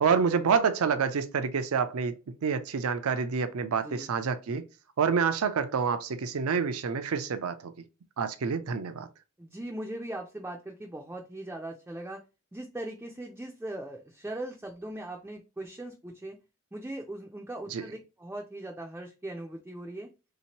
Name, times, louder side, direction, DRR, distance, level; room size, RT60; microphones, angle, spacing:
voice 1, 0.0-2.2 2.4-4.6 5.0-7.8 8.2-9.1 17.7-17.8, right 6 dB, 85° right, 0.5 m, -27 dB
voice 2, 3.8-4.1 9.4-12.2 12.5-16.4 16.7-20.1, right 1 dB, 10° right, 0.3 m, -39 dB
3.4 x 2.8 x 2.9 m
head